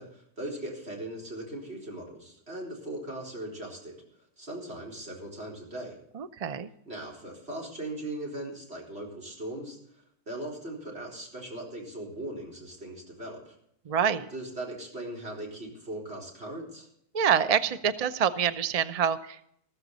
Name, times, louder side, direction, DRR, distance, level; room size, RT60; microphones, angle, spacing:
voice 1, 0.0-4.0 4.4-6.0 6.9-13.5 14.3-16.9, right 1 dB, 40° right, -2 dB, 4.4 m, -39 dB
voice 2, 6.1-6.7 13.9-14.3 17.1-19.5, right 8 dB, 75° right, 13 dB, 0.3 m, -26 dB
14.5 x 14.0 x 4.0 m, 0.71 s
omnidirectional pair, 1.6 m